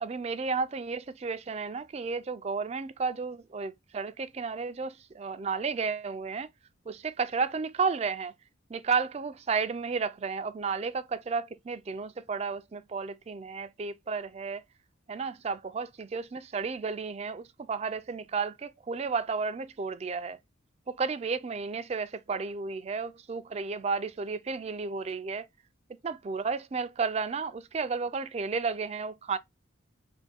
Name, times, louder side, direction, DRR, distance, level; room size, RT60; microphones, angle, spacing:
voice 1, 0.0-6.5 6.9-8.3 8.7-14.6 15.1-20.4 20.9-25.5 26.0-29.4, right 5 dB, 30° right, 0.3 m, -32 dB
3.4 x 2.2 x 4.1 m
head